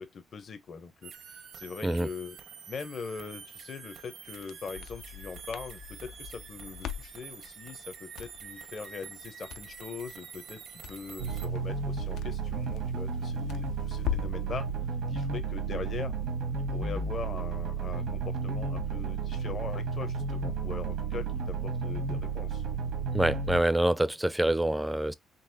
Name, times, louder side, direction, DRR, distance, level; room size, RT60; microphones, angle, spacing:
voice 1, 0.0-2.4 2.7-14.7 15.1-16.1 16.6-22.6, left 5 dB, 50° left, 0.7 m, -41 dB
sound 1, 1.0-11.5, right 7 dB, 70° right, 0.7 m, -47 dB
Crackle, 4.2-14.5, left 9 dB, 80° left, 0.4 m, -42 dB
sound 2, 11.2-23.6, right 4 dB, 85° right, 1.2 m, -32 dB
voice 2, 23.1-25.1, right 1 dB, 10° right, 0.4 m, -26 dB
3.9 x 2.8 x 2.7 m
cardioid pair, 90°, 0 cm